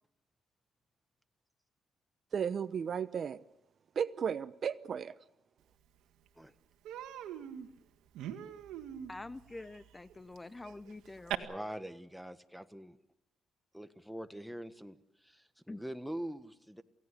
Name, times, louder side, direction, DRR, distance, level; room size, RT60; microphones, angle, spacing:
voice 1, 2.3-3.4 4.0-5.1, right 7 dB, 50° right, 0.8 m, -34 dB
Human voice, 5.8-5.9 6.3-6.5 6.8-11.3, right 10 dB, 90° right, 1.7 m, -43 dB
voice 2, 9.1-11.5 15.7-15.8, left 2 dB, 15° left, 0.8 m, -46 dB
voice 3, 11.4-13.0 13.7-16.8, right 1 dB, ahead, 1.4 m, -44 dB
28.0 x 17.0 x 8.2 m
cardioid pair, 90°, 0 cm